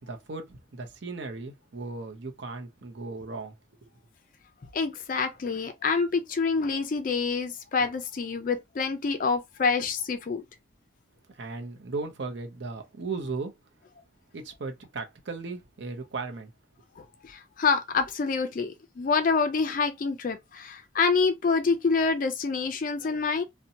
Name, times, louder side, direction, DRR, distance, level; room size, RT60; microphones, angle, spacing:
voice 1, 0.0-3.6 3.8-3.9 11.3-13.5 14.3-16.5, right 3 dB, 60° right, 0.6 m, -36 dB
voice 2, 4.7-10.4 17.0-23.4, left 4 dB, 45° left, 0.4 m, -27 dB
2.7 x 2.1 x 2.7 m
head